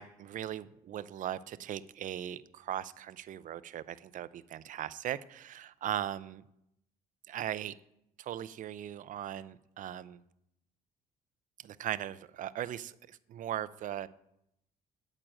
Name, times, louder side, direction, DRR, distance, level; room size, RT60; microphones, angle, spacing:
voice 1, 0.0-6.4 7.3-7.7 8.2-10.2 11.6-14.1, right 11 dB, 50° right, 16 dB, 0.5 m, -39 dB
8.9 x 8.7 x 6.4 m, 0.78 s
cardioid pair, 110°, 17 cm